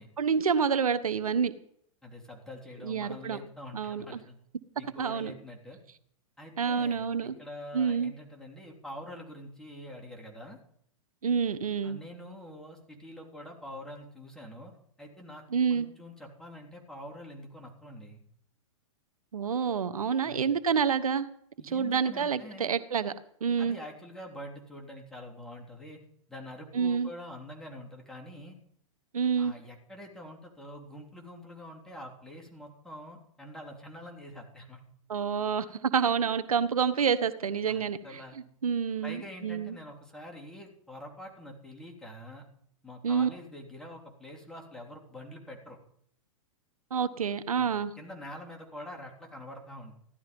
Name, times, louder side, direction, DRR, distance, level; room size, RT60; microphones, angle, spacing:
voice 1, 0.2-1.5 2.8-3.4 3.7-4.2 5.0-5.3 6.6-7.3 7.7-8.1 11.2-12.0 15.5-15.9 19.3-21.3 21.7-23.1 23.4-23.8 26.7-27.1 29.1-29.5 35.1-38.0 38.6-39.8 43.0-43.3 46.9-47.9, right 6 dB, 90° right, 12 dB, 1.2 m, -28 dB
voice 2, 2.0-4.4 4.8-5.8 6.4-10.6 11.8-14.7 15.0-18.2 20.3-20.5 21.6-22.7 23.6-26.0 26.3-28.6 29.4-34.8 37.7-38.4 39.0-42.4 42.8-45.8 47.5-50.0, left 1 dB, 5° left, -1 dB, 3.4 m, -45 dB
16.0 x 12.0 x 5.3 m, 0.67 s
hypercardioid pair, 125°, 18 cm